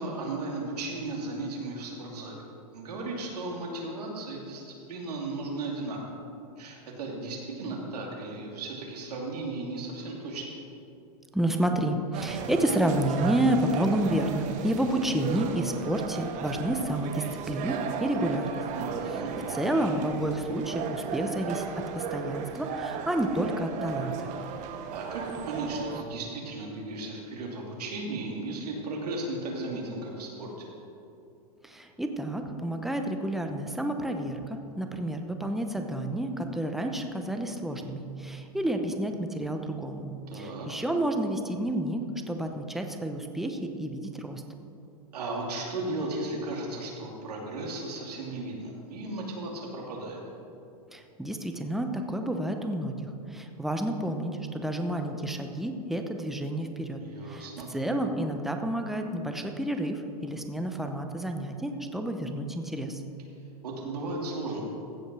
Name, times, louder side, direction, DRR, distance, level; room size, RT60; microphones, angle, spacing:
voice 1, 0.0-2.4 2.7-4.6 4.9-6.0 6.6-10.5 18.7-19.3 24.9-30.5 40.3-40.7 45.1-50.2 56.9-57.7 63.6-64.6, right 2 dB, 85° right, -2 dB, 2.6 m, -35 dB
voice 2, 11.3-18.6 19.5-21.6 21.9-24.3 31.6-44.4 50.9-63.0, right 1 dB, ahead, 5 dB, 0.8 m, -30 dB
sound 1, 12.1-26.0, right 6 dB, 40° right, 0.9 m, -35 dB
15.5 x 5.3 x 6.2 m, 2.6 s
hypercardioid pair, 130°, 20 cm